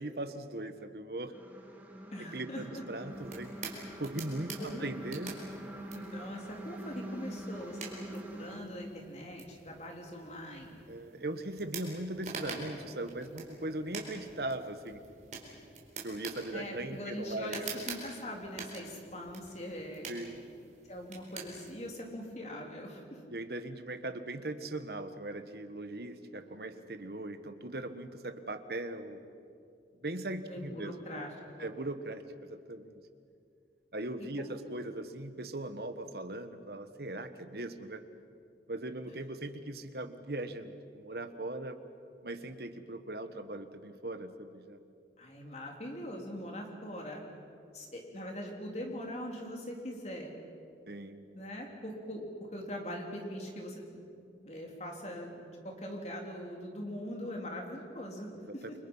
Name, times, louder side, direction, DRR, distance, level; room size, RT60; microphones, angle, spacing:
voice 1, 0.0-1.3 2.2-3.5 4.0-5.4 10.9-15.0 16.0-17.7 20.1-20.5 23.3-29.3 30.0-31.3 31.6-33.0 33.9-38.0 38.7-41.8 42.2-44.8 50.9-51.3 58.4-58.8, right 1 dB, 55° right, 9 dB, 1.4 m, -39 dB
sound 1, 1.3-8.6, right 1 dB, 10° right, 2.2 m, -44 dB
voice 2, 2.1-2.8 4.6-4.9 5.9-7.9 8.3-10.8 16.5-20.1 20.9-23.2 30.5-31.3 31.6-31.7 34.4-34.6 45.2-47.2 47.7-50.3 51.3-52.3 52.5-54.0 54.4-58.8, equal, 35° left, 1 dB, 3.6 m, -42 dB
sound 2, 3.1-21.9, right 4 dB, 40° right, 4.5 m, -47 dB
30.0 x 24.5 x 5.6 m, 2.4 s
head